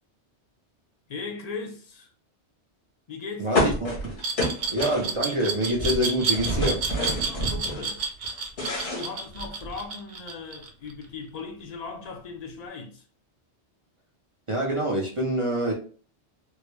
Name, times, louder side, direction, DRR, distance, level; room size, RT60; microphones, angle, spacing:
voice 1, 1.1-2.1 3.1-3.8 7.1-8.0 8.9-13.1, left 4 dB, 45° left, 0.6 m, -38 dB
voice 2, 3.4-3.9 4.7-6.8 14.5-15.7, right 1 dB, 35° right, 0.6 m, -26 dB
sound 1, 3.5-5.4 5.7-7.8 8.2-9.8, left 1 dB, 85° left, 1.6 m, -28 dB
Glass, 4.2-11.0, right 5 dB, 70° right, 0.9 m, -30 dB
3.7 x 2.1 x 3.1 m
omnidirectional pair, 1.2 m